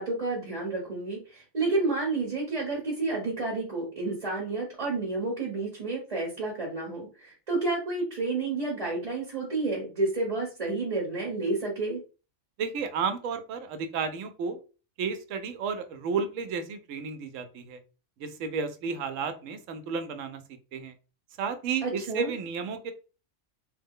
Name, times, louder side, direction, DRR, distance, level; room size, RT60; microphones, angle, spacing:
voice 1, 0.0-12.0 21.8-22.3, right 3 dB, 35° right, -3 dB, 0.9 m, -30 dB
voice 2, 12.6-14.6 15.0-17.8 18.2-20.4 20.7-20.9 21.4-22.9, right 5 dB, 85° right, 9 dB, 1.0 m, -32 dB
3.1 x 2.1 x 3.5 m, 0.34 s
omnidirectional pair, 1.3 m